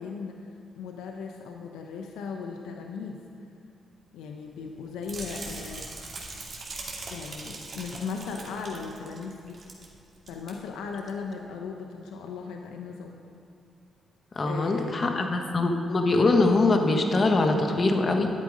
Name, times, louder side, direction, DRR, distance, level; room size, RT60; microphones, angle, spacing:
voice 1, 0.0-3.2 4.1-5.9 7.1-9.6 10.3-13.2 14.4-15.3, left 5 dB, 90° left, 2 dB, 0.8 m, -37 dB
sound 1, 5.0-9.9 10.1-10.5 11.0-11.1, right 3 dB, 55° right, 2.3 m, -40 dB
voice 2, 14.3-18.3, left 2 dB, 45° left, 3 dB, 1.4 m, -23 dB
11.5 x 8.3 x 5.0 m, 2.5 s
supercardioid pair, 60°, 0 cm